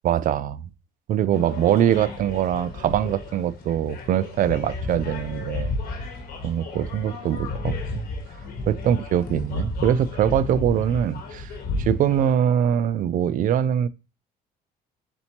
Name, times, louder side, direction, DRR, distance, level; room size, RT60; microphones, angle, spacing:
voice 1, 0.0-0.7 1.1-5.7 6.4-8.1 8.7-11.5 11.8-13.9, right 10 dB, 55° right, 0.4 m, -23 dB
sound 1, 1.3-12.3, left 3 dB, 60° left, 1.2 m, -33 dB
4.3 x 4.2 x 2.8 m
cardioid pair, 110°, 17 cm